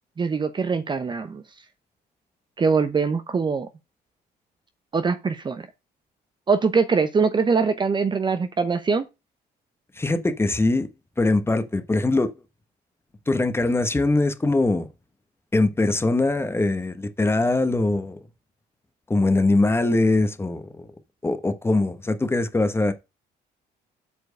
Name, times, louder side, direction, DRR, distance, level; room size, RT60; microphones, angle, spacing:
voice 1, 0.2-1.4 2.6-3.7 4.9-5.6 6.5-9.1, right 5 dB, 25° right, 0.8 m, -22 dB
voice 2, 10.0-10.9 11.2-12.3 13.3-14.9 15.5-18.2 19.1-20.8 21.2-22.9, left 2 dB, 15° left, 1.2 m, -22 dB
8.3 x 4.5 x 6.4 m
cardioid pair, 110°, 17 cm